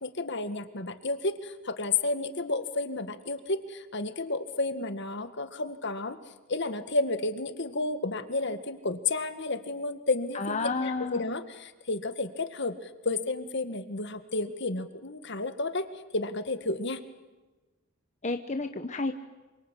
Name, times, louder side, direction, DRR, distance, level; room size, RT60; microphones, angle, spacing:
voice 1, 0.0-6.2 6.5-15.9 16.1-17.0, left 3 dB, 55° left, 9 dB, 1.9 m, -31 dB
voice 2, 10.3-11.3 18.2-19.1, left 3 dB, 35° left, 6 dB, 1.2 m, -31 dB
27.5 x 25.0 x 8.4 m, 1.2 s
head